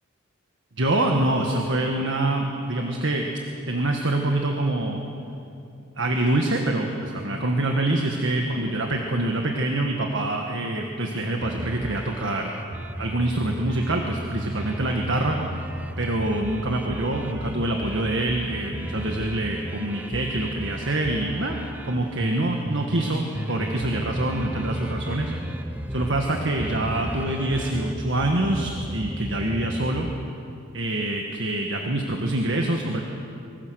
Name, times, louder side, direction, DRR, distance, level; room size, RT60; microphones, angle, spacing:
voice 1, 0.8-3.3 3.7-5.0 6.0-12.5 13.0-15.4 16.0-21.6 21.9-25.3 25.9-30.1 30.7-33.0, right 1 dB, 55° right, 1 dB, 1.7 m, -25 dB
sound 1, 11.4-30.3, right 1 dB, 5° right, 0.4 m, -34 dB
25.5 x 22.0 x 6.5 m, 2.7 s
head